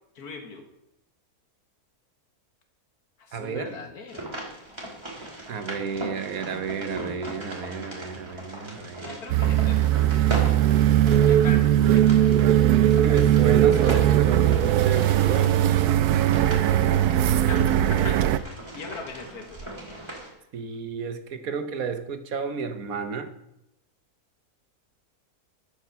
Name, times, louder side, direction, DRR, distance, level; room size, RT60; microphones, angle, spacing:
voice 1, 0.2-0.6 3.3-4.3 9.0-10.1 11.2-12.3 12.9-13.2 17.5-17.7 18.0-18.2 18.7-19.7, left 4 dB, 80° left, 5 dB, 2.1 m, -40 dB
voice 2, 3.3-3.8 5.5-9.2 12.8-15.5 20.5-23.3, right 5 dB, 65° right, 9 dB, 1.5 m, -32 dB
sound 1, 4.1-20.3, right 1 dB, 15° right, 2.9 m, -38 dB
sound 2, 9.3-18.4, right 11 dB, 85° right, 1.2 m, -19 dB
12.0 x 6.5 x 6.9 m, 0.84 s
omnidirectional pair, 1.6 m